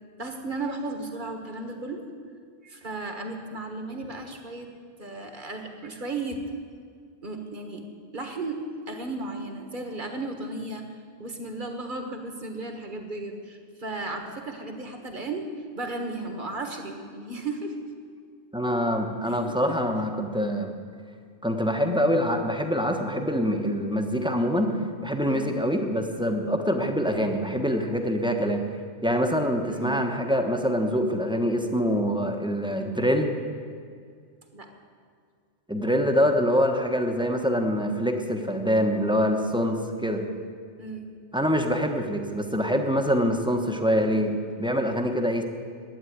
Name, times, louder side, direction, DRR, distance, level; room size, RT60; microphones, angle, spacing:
voice 1, 0.2-2.1 2.6-4.7 5.0-6.4 7.2-7.8 8.1-8.6 8.9-10.8 11.2-15.5 15.7-17.7 19.3-19.8 25.3-25.5 29.7-29.9 34.5-34.7 40.8-41.1, right 2 dB, 40° right, 4 dB, 1.6 m, -35 dB
voice 2, 18.5-20.7 21.4-28.6 29.0-33.3 35.7-40.3 41.3-45.4, equal, 5° right, 3 dB, 1.0 m, -25 dB
12.0 x 9.2 x 9.4 m, 2.1 s
omnidirectional pair, 1.3 m